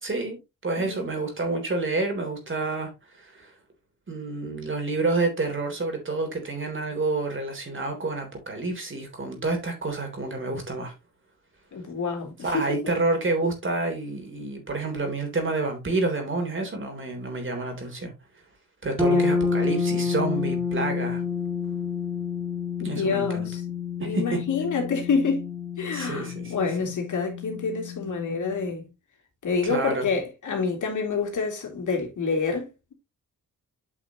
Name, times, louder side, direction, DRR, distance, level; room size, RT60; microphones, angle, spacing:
voice 1, 0.0-3.5 4.1-10.9 12.4-18.1 18.8-21.2 22.8-23.5 24.0-24.4 25.9-26.9 29.6-30.1, right 3 dB, 40° right, 3.4 m, -29 dB
voice 2, 0.8-1.1 11.7-12.8 19.0-19.3 22.8-23.6 24.0-25.5 25.8-28.8 29.4-32.7, left 4 dB, 65° left, 2.9 m, -28 dB
sound 1, 19.0-28.8, left 5 dB, 10° right, 2.1 m, -29 dB
8.8 x 5.8 x 3.0 m
cardioid pair, 95°, 32 cm